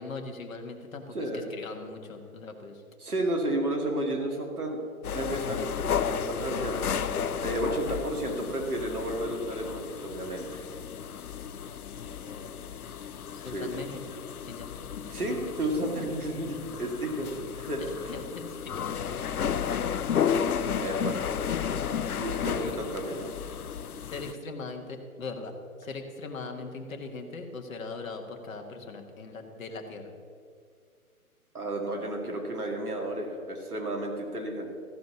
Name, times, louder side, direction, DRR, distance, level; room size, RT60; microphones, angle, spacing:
voice 1, 0.0-2.8 11.9-12.5 13.3-14.0 14.4-15.0 18.1-20.4 22.6-22.8 24.1-25.5 25.8-30.1, left 3 dB, 65° left, 4 dB, 1.7 m, -40 dB
voice 2, 3.0-4.8 5.1-6.8 7.4-10.6 13.5-13.7 15.1-17.8 20.8-21.2 22.2-23.3 31.5-34.7, right 1 dB, 85° right, 2 dB, 2.3 m, -32 dB
sound 1, 5.0-24.3, left 8 dB, 80° left, 0.7 m, -33 dB
14.5 x 5.3 x 6.9 m, 2.1 s
figure-of-eight pair, 145°, 44 cm